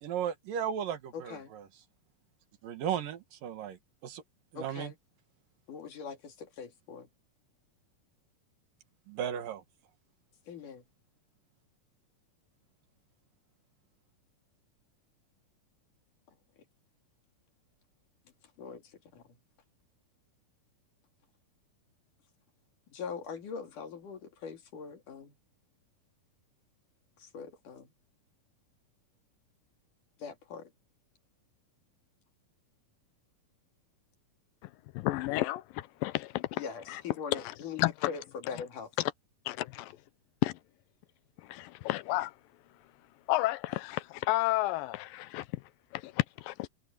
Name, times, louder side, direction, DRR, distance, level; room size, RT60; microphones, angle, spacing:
voice 1, 0.0-1.6 2.6-4.2 4.5-4.9 9.1-9.6, right 9 dB, 75° right, 3.3 m, -35 dB
voice 2, 1.1-1.5 4.5-5.0 5.7-7.1 10.5-10.8 18.6-19.4 22.9-25.4 27.2-27.9 30.2-30.7 36.5-38.9, left 6 dB, 70° left, 4.0 m, -42 dB
voice 3, 34.9-36.6 36.9-37.0 37.3-37.4 37.8-38.1 39.5-40.0 40.4-40.5 41.4-42.3 43.3-45.5 45.9-46.7, left 17 dB, 85° left, 2.4 m, -31 dB
omnidirectional pair, 3.9 m